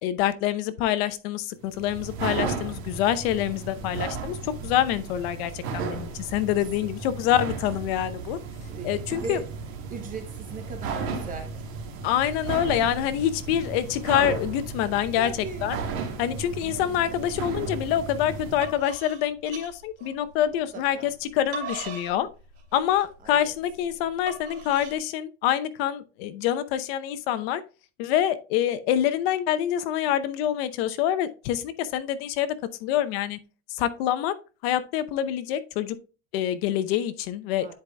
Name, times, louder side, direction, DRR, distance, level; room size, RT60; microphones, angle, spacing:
voice 1, 0.0-8.4 8.8-9.4 12.0-15.3 15.6-15.8 16.2-22.3 22.7-27.6 28.0-32.5 32.8-33.4 33.7-34.3 34.6-36.0 36.3-37.7, left 11 dB, 70° left, 0.8 m, -26 dB
sound 1, 1.6-18.8, right 5 dB, 75° right, 1.7 m, -34 dB
voice 2, 8.6-9.4 9.9-11.5 15.2-15.7 16.7-17.1 20.4-21.1 23.2-23.5 37.6-37.7, right 4 dB, 25° right, 0.8 m, -39 dB
sound 2, 18.6-20.5 21.1-25.0, right 5 dB, 45° right, 2.7 m, -40 dB
10.5 x 4.8 x 2.2 m
supercardioid pair, 150°, 32 cm